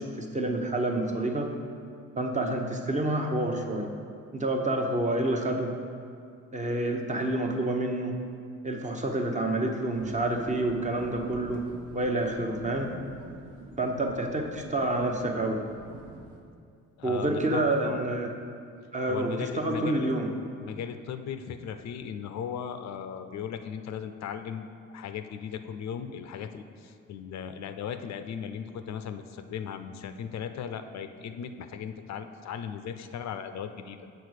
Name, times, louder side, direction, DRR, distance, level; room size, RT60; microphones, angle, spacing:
voice 1, 0.0-1.5 2.2-3.9 4.3-5.7 6.5-8.2 8.6-11.6 11.9-12.9 13.8-15.6 17.0-18.3 18.9-20.3, right 2 dB, 25° right, 2 dB, 0.8 m, -28 dB
sound 1, 9.9-16.4, right 2 dB, 65° right, 1.3 m, -47 dB
voice 2, 17.0-18.3 19.1-20.2 20.6-24.7 24.9-34.0, left 8 dB, 65° left, 9 dB, 0.5 m, -37 dB
6.9 x 4.0 x 6.4 m, 2.3 s
cardioid pair, 90°, 30 cm